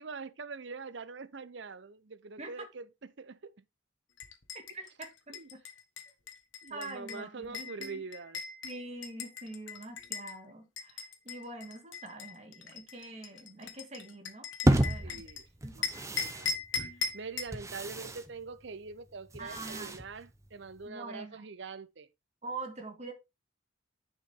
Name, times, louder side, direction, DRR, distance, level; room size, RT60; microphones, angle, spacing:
voice 1, 0.0-3.6 5.3-5.5 6.6-8.4 15.0-15.5 15.7-15.9 16.2-16.6 17.1-22.1, right 4 dB, 65° right, 0.7 m, -44 dB
sound 1, 4.2-10.3 10.8-15.4 15.8-17.6, left 5 dB, 80° left, 1.5 m, -39 dB
voice 2, 4.5-5.6 6.7-8.0 8.6-15.3 15.6-16.2 19.4-20.0 20.9-21.5 22.4-23.1, right 2 dB, 35° right, 2.1 m, -45 dB
sound 2, 14.7-20.9, right 1 dB, 15° right, 0.8 m, -33 dB
10.0 x 5.4 x 3.6 m
head